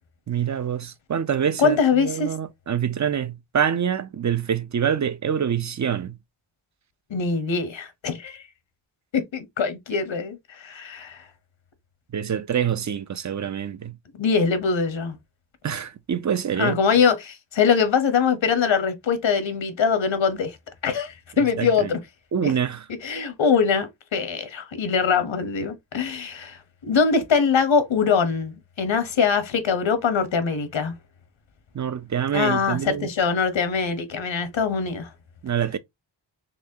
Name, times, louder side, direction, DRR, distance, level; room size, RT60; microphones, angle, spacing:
voice 1, 0.3-6.2 12.1-14.0 15.6-16.8 21.6-21.9 22.3-22.9 31.7-33.1 35.4-35.8, right 8 dB, 40° right, 0.4 m, -25 dB
voice 2, 1.6-2.3 7.1-8.4 9.1-11.2 14.2-15.2 16.6-20.6 20.8-22.0 22.4-22.5 23.0-30.9 32.3-35.1, left 6 dB, 90° left, 0.9 m, -23 dB
4.1 x 3.0 x 2.7 m
wide cardioid pair, 105°, 45 cm